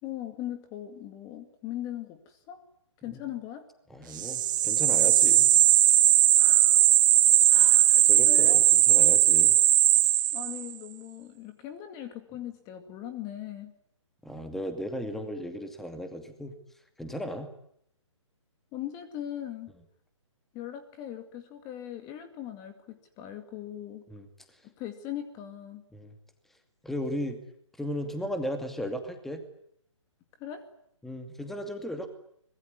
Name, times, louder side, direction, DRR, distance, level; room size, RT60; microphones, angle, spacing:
voice 1, 0.0-2.6 3.0-3.6 6.4-6.8 7.5-8.6 10.3-13.7 18.7-19.7 20.5-24.1 24.6-25.8 30.4-30.7, left 11 dB, 20° left, 9 dB, 2.3 m, -40 dB
voice 2, 3.9-5.5 8.1-9.6 14.2-16.6 17.0-17.5 24.1-24.6 25.9-26.1 26.8-27.4 27.8-29.4 31.0-32.1, equal, ahead, 7 dB, 2.5 m, -36 dB
sound 1, 4.2-10.7, right 12 dB, 40° right, 1.1 m, -19 dB
25.0 x 21.5 x 9.7 m, 0.71 s
hypercardioid pair, 145°, 16 cm